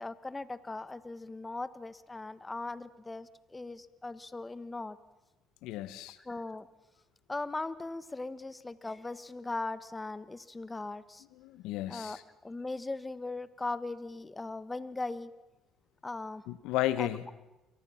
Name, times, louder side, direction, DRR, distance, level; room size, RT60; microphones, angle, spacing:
voice 1, 0.0-5.0 6.2-6.7 7.3-11.2 11.9-15.3 16.0-16.4 17.0-17.1, left 2 dB, 20° left, 15 dB, 1.5 m, -39 dB
voice 2, 5.6-6.2 11.4-12.2 16.5-17.2, left 14 dB, 80° left, 15 dB, 1.2 m, -33 dB
29.5 x 23.5 x 5.8 m, 0.99 s
supercardioid pair, 65°, 0 cm